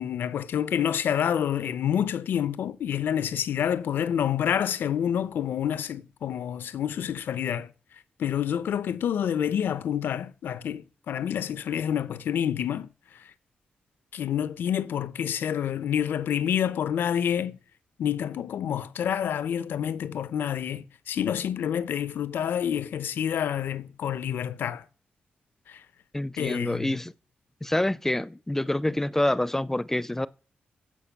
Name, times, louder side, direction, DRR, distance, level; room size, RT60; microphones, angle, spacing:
voice 1, 0.0-7.7 8.2-13.3 14.1-17.6 18.0-24.8 25.7-25.8 26.4-27.0, left 9 dB, 90° left, 0.7 m, -28 dB
voice 2, 26.1-27.1 27.6-30.3, left 1 dB, 10° left, 0.5 m, -27 dB
15.5 x 5.2 x 7.3 m
cardioid pair, 100°, 3 cm